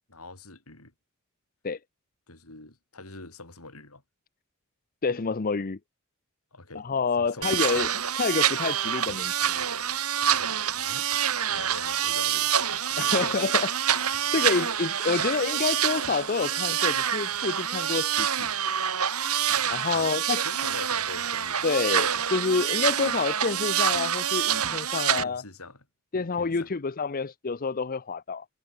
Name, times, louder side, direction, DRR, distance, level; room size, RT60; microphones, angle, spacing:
voice 1, 0.1-0.9 2.3-4.0 6.5-6.9 7.2-7.8 10.8-11.1 11.5-12.5 12.9-13.4 19.9-20.2 20.4-21.7 25.2-25.8 26.1-26.7, left 2 dB, 80° left, 6.4 m, -44 dB
voice 2, 5.0-5.8 6.7-9.5 13.0-18.5 19.7-20.7 21.6-25.4 26.1-28.4, left 4 dB, 40° left, 0.6 m, -28 dB
sound 1, 7.4-25.2, right 9 dB, 85° right, 3.1 m, -27 dB
head